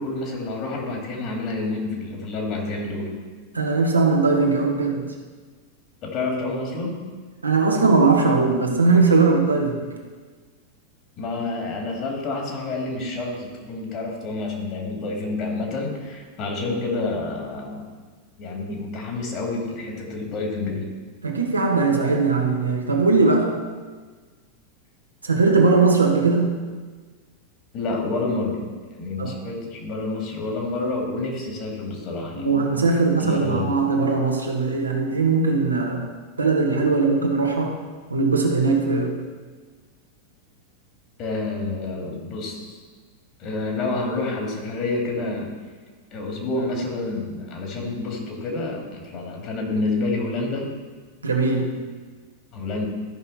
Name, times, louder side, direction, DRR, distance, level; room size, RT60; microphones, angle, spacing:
voice 1, 0.0-3.1 6.0-6.9 11.2-17.9 18.4-20.9 27.7-28.6 29.0-32.6 33.2-33.8 41.2-42.8 43.4-45.5 46.1-50.7 52.5-52.9, left 2 dB, 40° left, 0 dB, 2.5 m, -28 dB
voice 2, 3.5-5.1 7.4-9.9 21.2-23.6 25.2-26.6 29.2-29.4 32.3-36.1 36.4-37.8 38.1-39.2 51.2-51.8, right 4 dB, 85° right, 1 dB, 1.3 m, -20 dB
13.5 x 5.6 x 4.2 m, 1.4 s
figure-of-eight pair, 90°, 0 cm